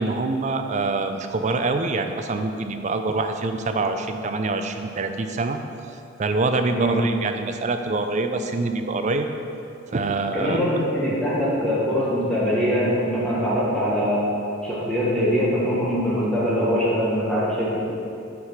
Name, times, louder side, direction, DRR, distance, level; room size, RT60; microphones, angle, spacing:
voice 1, 0.0-5.6 6.2-9.3 9.9-10.6 11.1-11.2, right 3 dB, 35° right, 7 dB, 0.4 m, -25 dB
voice 2, 6.7-7.0 10.3-14.3 14.6-17.8, equal, 5° left, -8 dB, 1.2 m, -22 dB
5.9 x 4.8 x 5.8 m, 2.7 s
head